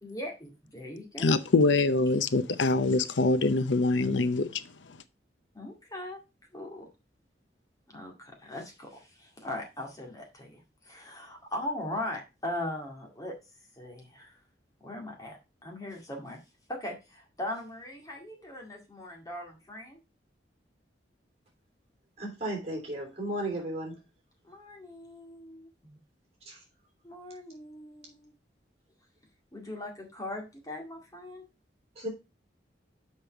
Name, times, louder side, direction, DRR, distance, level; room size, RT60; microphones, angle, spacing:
voice 1, 0.0-1.3 5.5-6.2 6.5-6.9 7.9-13.3 13.8-14.4 14.8-15.4 15.6-16.4 16.7-20.0 24.4-26.0 27.0-28.3 29.5-31.4, left 1 dB, 20° left, 2.0 m, -39 dB
voice 2, 1.2-4.6, left 3 dB, 80° left, 0.6 m, -24 dB
voice 3, 22.2-24.0 26.4-26.6 31.9-32.1, right 1 dB, 35° right, 3.2 m, -34 dB
6.9 x 5.4 x 4.4 m
head